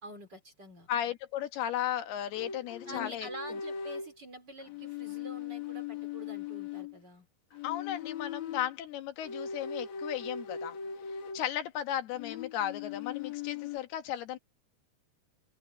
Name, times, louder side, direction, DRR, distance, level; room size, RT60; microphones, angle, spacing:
voice 1, 0.0-0.9 2.9-7.3, right 1 dB, 30° right, 2.9 m, -47 dB
voice 2, 0.9-3.3 7.6-10.8 11.3-14.4, left 11 dB, 85° left, 3.4 m, -35 dB
sound 1, 2.3-4.1 4.7-7.0 7.5-8.7 9.2-11.5 12.1-13.8, left 7 dB, 55° left, 2.8 m, -39 dB
open air
omnidirectional pair, 4.5 m